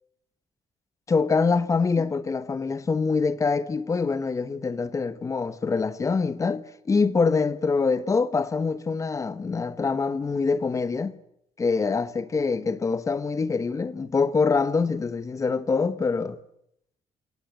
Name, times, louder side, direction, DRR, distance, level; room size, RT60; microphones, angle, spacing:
voice 1, 1.1-11.1 11.6-16.3, left 4 dB, 25° left, 1.1 m, -25 dB
27.5 x 19.0 x 8.9 m
cardioid pair, 165°, 13 cm